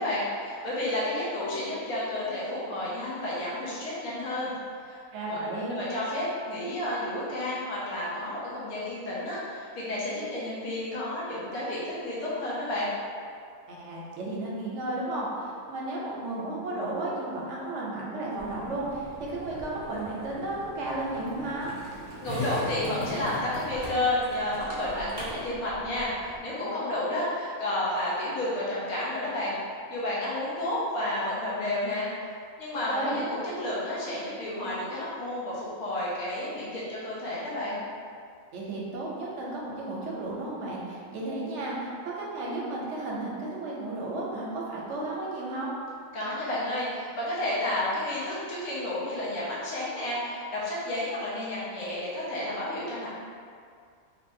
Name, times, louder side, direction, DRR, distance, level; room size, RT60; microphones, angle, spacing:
voice 1, 0.0-4.5 4.8-5.4 5.7-12.9 22.2-29.6 29.9-32.1 32.6-37.8 46.1-53.1, left 1 dB, 85° left, -8 dB, 1.2 m, -31 dB
voice 2, 5.1-5.8 13.7-21.7 32.9-33.2 38.5-45.8, right 2 dB, 65° right, -4 dB, 0.8 m, -33 dB
Skateboard, 18.4-26.4, left 1 dB, 35° right, 0.4 m, -40 dB
3.1 x 2.7 x 2.6 m, 2.2 s
omnidirectional pair, 1.5 m